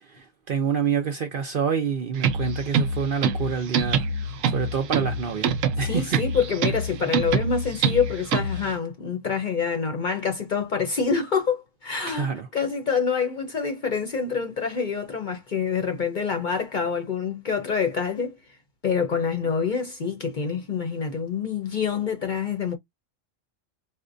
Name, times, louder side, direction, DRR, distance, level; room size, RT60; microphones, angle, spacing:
voice 1, 0.1-4.1 4.5-6.2 12.1-12.5, right 7 dB, 55° right, 0.6 m, -27 dB
sound 1, 2.2-8.7, right 4 dB, 80° right, 1.0 m, -26 dB
voice 2, 5.8-18.4 18.8-22.7, left 6 dB, 45° left, 0.7 m, -26 dB
4.2 x 2.1 x 2.5 m
omnidirectional pair, 1.3 m